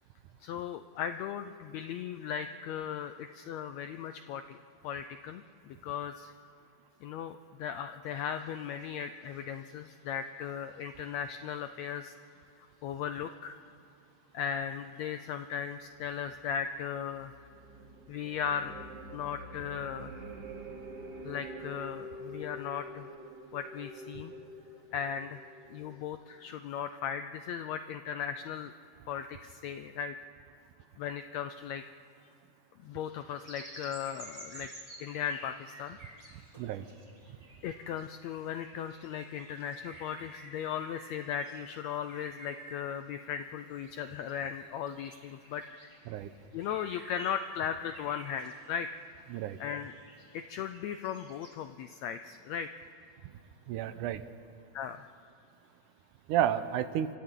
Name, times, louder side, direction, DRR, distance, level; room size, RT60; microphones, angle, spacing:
voice 1, 0.4-4.6 4.8-6.3 7.0-12.1 12.6-13.6 14.3-17.3 18.1-18.8 19.1-20.2 21.2-23.1 23.5-24.3 24.9-25.4 25.7-28.7 29.1-30.1 31.0-31.8 32.8-36.0 37.6-45.9 46.5-48.9 49.6-49.9 50.3-52.7 54.7-55.0, left 8 dB, 80° left, 9 dB, 1.5 m, -37 dB
sound 1, 15.7-26.0, right 1 dB, 55° right, 1.2 m, -47 dB
sound 2, 33.5-48.8 49.3-51.5, right 1 dB, 10° right, 2.7 m, -52 dB
voice 2, 53.7-54.2 56.3-57.1, right 10 dB, 80° right, 12 dB, 2.2 m, -31 dB
29.5 x 25.0 x 3.8 m, 2.7 s
omnidirectional pair, 3.7 m